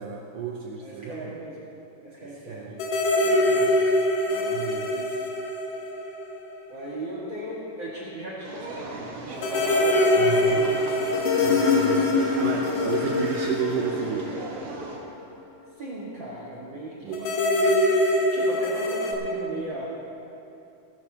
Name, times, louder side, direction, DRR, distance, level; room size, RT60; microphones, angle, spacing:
voice 1, 0.0-1.4 2.2-2.8 3.2-3.8 4.3-4.9 10.2-10.7 11.4-14.3 17.0-17.3, right 6 dB, 80° right, 0 dB, 1.8 m, -32 dB
voice 2, 0.8-1.6 2.0-2.7 3.5-3.8 4.8-5.2 6.7-10.9 11.9-12.7 15.8-17.8 18.3-19.9, right 1 dB, 45° right, -7 dB, 1.6 m, -37 dB
sound 1, 2.8-6.6 6.8-6.9 9.4-14.8 17.1-19.2, left 2 dB, 75° left, 2.8 m, -23 dB
sound 2, 8.4-15.0, right 3 dB, 60° right, 1.4 m, -37 dB
18.0 x 13.0 x 2.9 m, 2.8 s
omnidirectional pair, 4.7 m